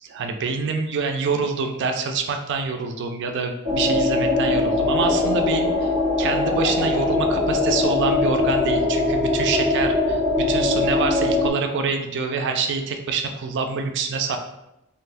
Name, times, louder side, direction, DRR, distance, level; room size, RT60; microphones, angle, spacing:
voice 1, 0.0-5.9 6.2-14.4, right 5 dB, 55° right, 5 dB, 0.4 m, -26 dB
sound 1, 3.6-11.5, left 2 dB, 15° left, 1.3 m, -21 dB
3.3 x 2.5 x 2.5 m, 0.88 s
head